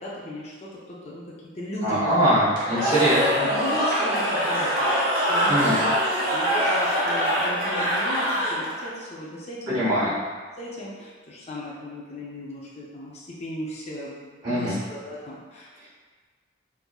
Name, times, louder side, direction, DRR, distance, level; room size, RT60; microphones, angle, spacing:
voice 1, 0.0-2.5 3.2-5.0 5.3-5.9 6.2-10.1 10.6-15.9, left 1 dB, 35° left, -6 dB, 0.5 m, -36 dB
voice 2, 1.8-3.5 5.5-5.8 9.7-10.1 14.4-14.8, equal, 20° right, -15 dB, 1.0 m, -22 dB
Cheering / Crowd, 2.5-8.9, equal, 45° right, 1.0 m, -24 dB
4.4 x 2.6 x 2.3 m, 1.5 s
head